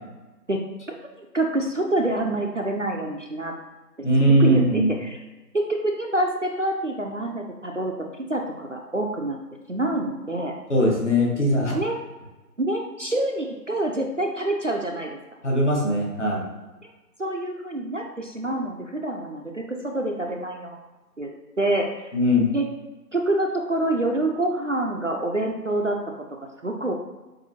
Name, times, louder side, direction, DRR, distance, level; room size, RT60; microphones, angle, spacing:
voice 1, 1.2-3.5 4.4-5.2 5.5-7.9 8.3-9.4 9.7-10.5 11.7-12.0 12.6-15.2 17.2-20.8 21.2-21.3 21.6-22.1 22.5-22.6 23.1-26.0 26.6-26.9, right 1 dB, 50° right, 1 dB, 0.5 m, -26 dB
voice 2, 4.0-4.9 10.7-11.8 15.4-16.4 22.1-22.5, equal, 45° left, -2 dB, 1.3 m, -20 dB
7.2 x 2.6 x 2.8 m, 1.1 s
figure-of-eight pair, 165°, 49 cm